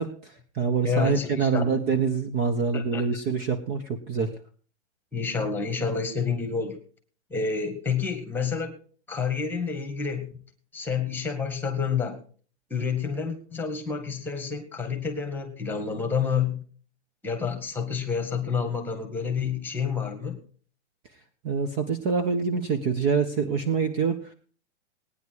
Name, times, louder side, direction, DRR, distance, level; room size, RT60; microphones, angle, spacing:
voice 1, 0.0-4.4 21.4-24.3, right 5 dB, 25° right, 10 dB, 1.1 m, -26 dB
voice 2, 0.8-1.7 2.7-3.0 5.1-6.8 7.3-8.7 9.1-10.3 10.7-12.2 12.7-16.6 17.2-20.4, left 6 dB, 5° left, 6 dB, 1.8 m, -29 dB
19.0 x 9.9 x 4.7 m, 0.43 s
hypercardioid pair, 155°, 35 cm